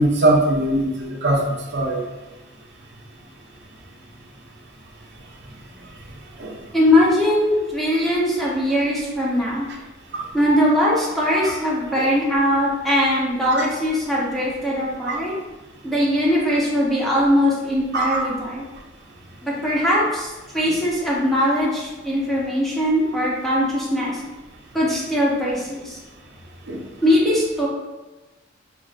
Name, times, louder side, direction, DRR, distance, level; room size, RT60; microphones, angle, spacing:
voice 1, 0.0-1.4 1.7-2.0 6.4-6.6 10.1-10.2 15.1-15.2 17.9-18.2 26.7-26.8, right 1 dB, 60° right, -1 dB, 0.7 m, -20 dB
voice 2, 6.7-9.7 10.3-15.3 15.8-18.6 19.4-24.2 24.7-26.0 27.0-27.7, equal, ahead, -6 dB, 0.9 m, -20 dB
6.0 x 2.1 x 2.4 m, 1.1 s
head